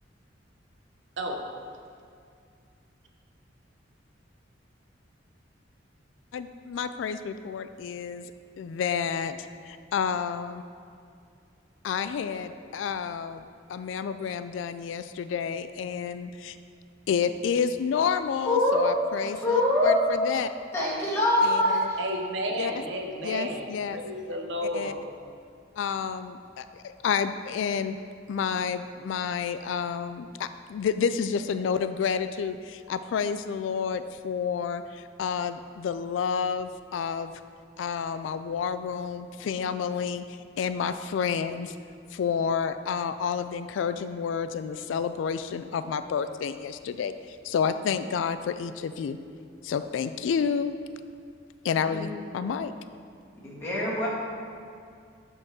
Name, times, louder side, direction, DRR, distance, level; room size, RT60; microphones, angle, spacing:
voice 1, 6.3-8.3 8.6-9.4 9.6-10.6 11.8-16.6 17.1-20.5 21.4-21.9 22.6-22.7 23.2-24.0 24.7-24.9 25.8-28.0 28.3-37.3 37.8-40.2 40.6-41.8 42.1-49.2 49.6-50.8 51.6-52.7, left 6 dB, 85° left, 11 dB, 0.3 m, -30 dB
voice 2, 18.5-22.0 51.9-52.1 53.4-54.1, left 1 dB, 15° left, -8 dB, 1.9 m, -25 dB
voice 3, 22.0-25.0, equal, 70° right, 3 dB, 0.8 m, -32 dB
7.6 x 3.9 x 6.0 m, 2.3 s
head